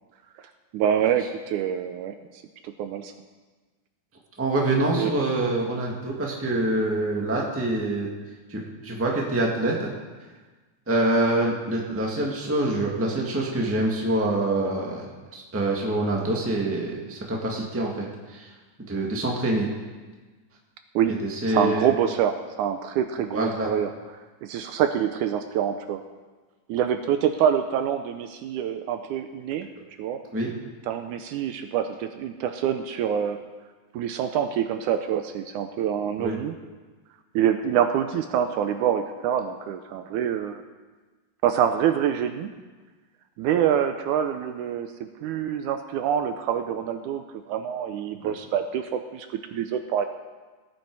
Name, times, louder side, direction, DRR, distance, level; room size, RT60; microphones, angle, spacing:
voice 1, 0.7-2.2 2.6-3.1 5.0-5.1 21.0-21.1 21.5-23.9 24.4-26.0 26.7-29.7 30.0-30.2 30.9-33.4 33.9-36.6 37.4-40.6 41.4-42.5 43.4-49.3 49.5-50.1, right 9 dB, 80° right, 7 dB, 2.0 m, -26 dB
voice 2, 4.4-8.1 8.5-9.9 10.9-15.0 15.3-18.5 18.9-19.7 21.1-21.9 23.3-23.7 30.3-30.5 36.2-36.4 48.2-48.3, right 1 dB, 10° right, -2 dB, 0.9 m, -25 dB
18.0 x 8.9 x 4.7 m, 1.3 s
omnidirectional pair, 3.8 m